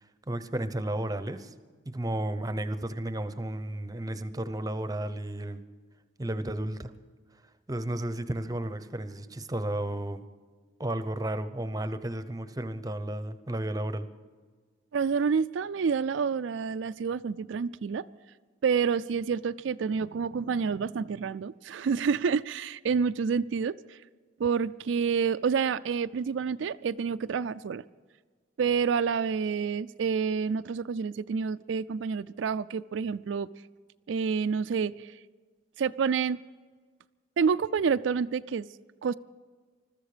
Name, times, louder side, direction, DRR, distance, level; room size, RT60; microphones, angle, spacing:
voice 1, 0.3-1.5 1.8-5.6 6.2-6.9 7.7-10.2 10.8-14.1, right 1 dB, 20° right, 11 dB, 0.7 m, -33 dB
voice 2, 14.9-18.0 18.6-24.0 24.4-27.8 28.6-33.5 34.1-35.1 35.8-36.4 37.4-38.7 39.0-39.1, right 6 dB, 80° right, 12 dB, 0.4 m, -28 dB
21.0 x 13.5 x 5.0 m, 1.5 s
head